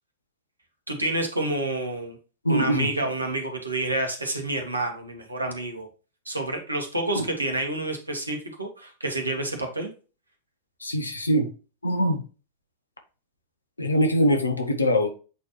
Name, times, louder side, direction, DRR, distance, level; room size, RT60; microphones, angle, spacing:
voice 1, 0.9-2.2 2.5-5.9 6.2-9.9, right 2 dB, 80° right, 3 dB, 1.6 m, -29 dB
voice 2, 2.4-2.9 7.1-7.2 10.8-11.5 11.8-12.2 13.8-15.1, equal, 80° left, 5 dB, 1.2 m, -22 dB
8.1 x 4.3 x 3.1 m, 0.34 s
figure-of-eight pair, 90°, 0 cm